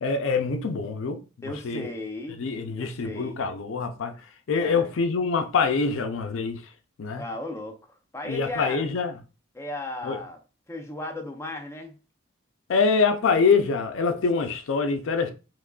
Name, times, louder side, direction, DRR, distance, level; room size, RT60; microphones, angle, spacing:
voice 1, 0.0-1.9 2.4-4.1 4.5-6.6 7.0-7.2 8.3-9.1 10.0-10.2 12.7-15.3, left 5 dB, 70° left, 0.4 m, -25 dB
voice 2, 1.4-2.4 2.7-3.4 4.6-4.9 7.2-7.8 8.1-8.9 9.5-10.4 10.7-11.9, left 2 dB, 15° left, 0.5 m, -35 dB
3.6 x 3.0 x 2.3 m
head